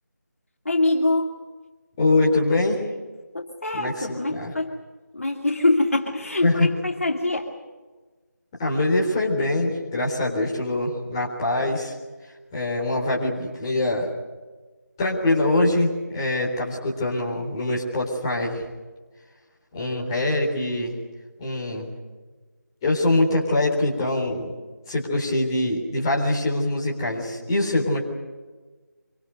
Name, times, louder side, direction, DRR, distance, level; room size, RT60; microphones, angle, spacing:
voice 1, 0.6-1.3 3.3-4.8 5.1-7.5, left 2 dB, 50° left, 1 dB, 2.6 m, -24 dB
voice 2, 2.0-2.8 3.7-4.5 6.4-6.7 8.6-11.9 12.5-14.1 15.0-18.6 19.7-20.9 21.4-21.9 22.8-24.5 24.9-28.0, left 2 dB, 15° left, -4 dB, 3.8 m, -23 dB
26.0 x 25.0 x 6.6 m, 1.3 s
figure-of-eight pair, 165°, 10 cm